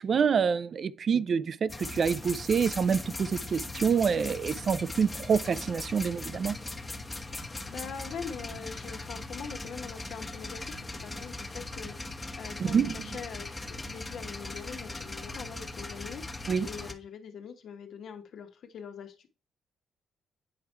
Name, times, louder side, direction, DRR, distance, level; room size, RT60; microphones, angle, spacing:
voice 1, 0.0-6.6 12.6-13.0 16.5-16.7, right 6 dB, 50° right, 0.4 m, -27 dB
sound 1, 1.7-16.9, left 2 dB, 20° left, 1.0 m, -39 dB
voice 2, 7.7-19.3, left 6 dB, 65° left, 1.3 m, -43 dB
8.6 x 4.5 x 4.5 m
cardioid pair, 90°, 0 cm